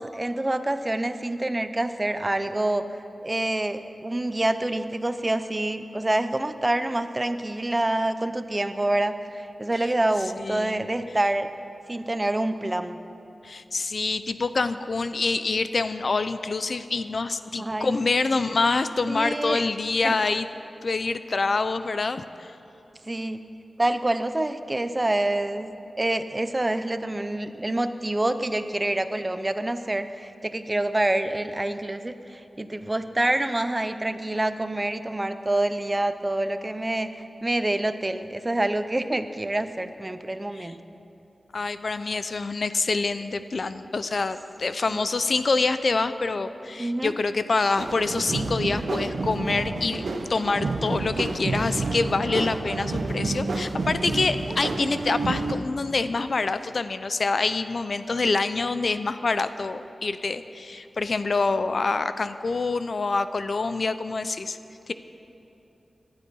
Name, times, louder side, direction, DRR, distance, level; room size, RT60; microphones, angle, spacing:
voice 1, 0.0-2.8 3.2-11.5 11.9-13.0 17.6-17.9 19.1-19.6 20.0-20.2 23.1-23.4 23.8-25.7 26.0-40.8 44.9-45.0 46.8-47.1, right 1 dB, 20° right, 10 dB, 0.6 m, -27 dB
voice 2, 10.4-10.8 13.4-20.5 20.8-22.5 40.6-40.7 41.5-64.6 64.9-65.0, left 3 dB, 55° left, 12 dB, 0.5 m, -26 dB
sound 1, 47.8-55.5, right 3 dB, 65° right, 1.0 m, -29 dB
17.5 x 12.0 x 5.5 m, 2.9 s
wide cardioid pair, 105°, 0 cm